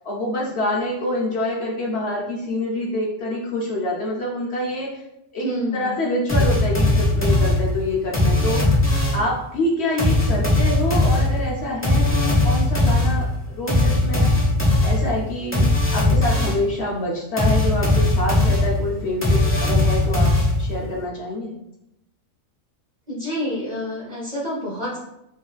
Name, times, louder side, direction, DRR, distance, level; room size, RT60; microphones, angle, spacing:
voice 1, 0.0-5.0 5.3-8.8 9.1-14.3 14.8-15.7 15.9-21.6, left 1 dB, 60° left, -2 dB, 0.8 m, -26 dB
voice 2, 5.4-5.9 23.1-25.0, equal, 35° right, -5 dB, 0.8 m, -28 dB
sound 1, 6.3-9.3 10.0-16.7 17.4-20.9, left 2 dB, 10° left, 0.7 m, -19 dB
4.8 x 2.6 x 2.3 m, 0.84 s
omnidirectional pair, 1.4 m